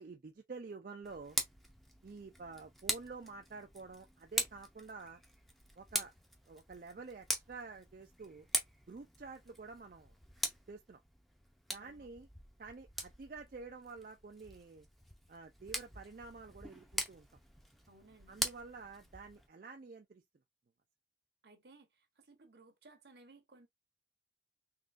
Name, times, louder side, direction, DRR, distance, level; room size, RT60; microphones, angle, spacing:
voice 1, 0.0-1.4 2.0-5.2 5.8-6.1 6.5-8.5 8.9-10.1 10.7-11.0 11.7-12.3 12.6-14.9 15.3-17.3 18.3-20.2, right 4 dB, 50° right, 0.4 m, -49 dB
Tick, 1.0-19.5, equal, ahead, 0.5 m, -43 dB
voice 2, 17.9-18.4 21.4-23.7, right 3 dB, 75° right, 1.0 m, -61 dB
3.7 x 3.0 x 2.5 m
head